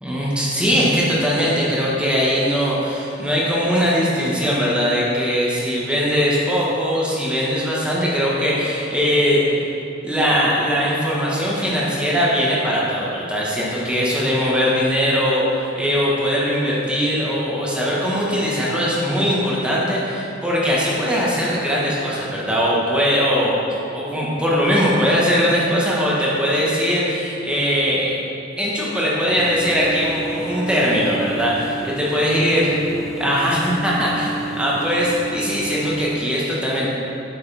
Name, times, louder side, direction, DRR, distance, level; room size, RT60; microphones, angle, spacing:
voice 1, 0.0-9.7 10.0-23.5 23.9-28.2 28.6-32.7 33.2-36.9, equal, 5° right, -6 dB, 1.3 m, -20 dB
sound 1, 29.3-36.2, right 2 dB, 20° left, 0.4 m, -31 dB
9.1 x 6.7 x 3.4 m, 2.7 s
head